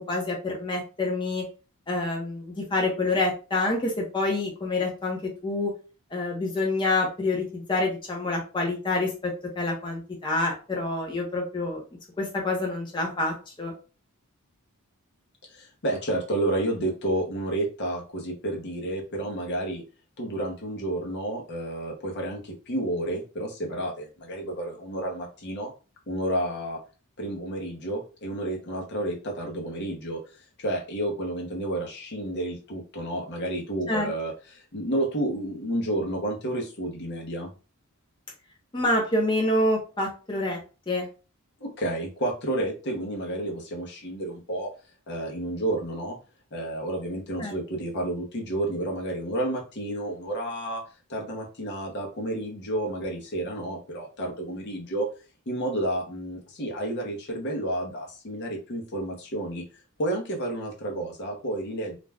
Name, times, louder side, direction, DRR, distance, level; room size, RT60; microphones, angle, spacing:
voice 1, 0.1-1.4 1.9-5.7 6.1-11.8 12.2-13.7 33.9-34.1 38.7-40.6 40.9-41.1 47.4-47.5, left 2 dB, 20° left, -1 dB, 0.7 m, -27 dB
voice 2, 15.5-19.8 20.2-25.7 26.1-26.8 27.2-37.5 41.6-44.7 45.1-46.2 46.5-50.8 51.1-55.1 55.5-59.6 60.0-62.0, right 1 dB, 50° left, 0 dB, 0.8 m, -30 dB
2.5 x 2.2 x 3.3 m, 0.34 s
head